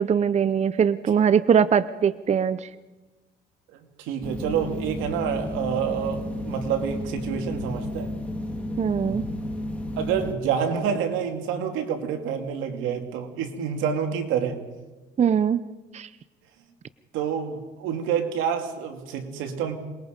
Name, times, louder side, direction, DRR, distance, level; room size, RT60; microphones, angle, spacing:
voice 1, 0.0-2.7 8.8-9.2 15.2-15.6 15.9-16.1, right 7 dB, 35° right, 16 dB, 0.7 m, -21 dB
voice 2, 4.0-8.1 9.0-9.4 10.0-14.6 17.1-19.8, right 7 dB, 90° right, 5 dB, 2.5 m, -28 dB
sound 1, 4.2-10.3, left 1 dB, 5° left, 3.2 m, -32 dB
27.5 x 20.5 x 5.2 m, 1.1 s
cardioid pair, 95°, 20 cm